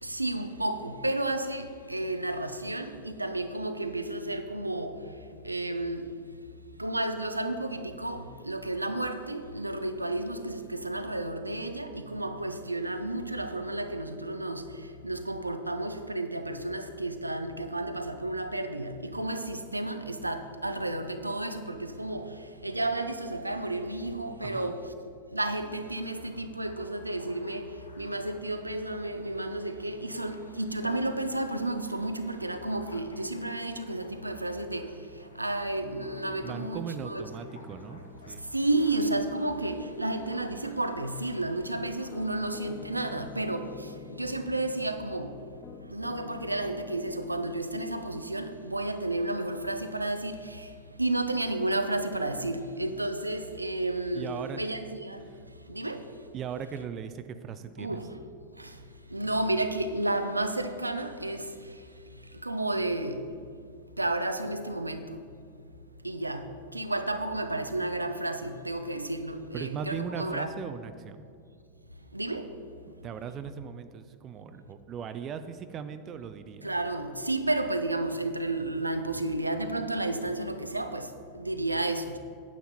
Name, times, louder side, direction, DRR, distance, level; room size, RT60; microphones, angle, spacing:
voice 1, 0.0-5.0 5.4-6.1 6.8-24.9 25.3-34.9 35.3-37.2 38.5-45.4 45.9-50.7 51.0-55.2 55.7-56.1 57.8-58.2 58.6-58.8 59.1-61.7 62.4-63.3 64.0-65.2 66.0-70.5 72.1-72.5 76.6-82.2, right 2 dB, 85° right, 0.5 m, -32 dB
voice 2, 24.4-24.7 33.4-33.5 36.4-38.4 54.1-54.7 55.3-55.4 56.3-58.0 69.5-71.3 73.0-76.7, right 7 dB, 30° right, 0.5 m, -38 dB
sound 1, 26.0-42.9, left 2 dB, 75° left, 1.1 m, -56 dB
Piano, 35.8-45.2 45.6-47.6, left 6 dB, 30° left, 0.7 m, -48 dB
9.1 x 8.6 x 4.3 m
figure-of-eight pair, 90°, 0 cm